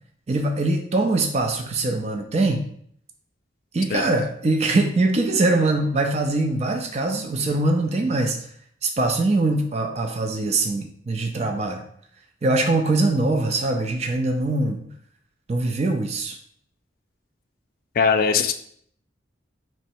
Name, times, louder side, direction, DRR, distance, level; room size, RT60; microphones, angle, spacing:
voice 1, 0.3-2.7 3.7-8.4 8.8-11.8 12.4-14.9 15.5-16.4, right 2 dB, 35° right, 4 dB, 0.4 m, -22 dB
voice 2, 18.0-18.5, left 6 dB, 50° left, 7 dB, 0.3 m, -20 dB
3.1 x 3.1 x 4.4 m, 0.64 s
head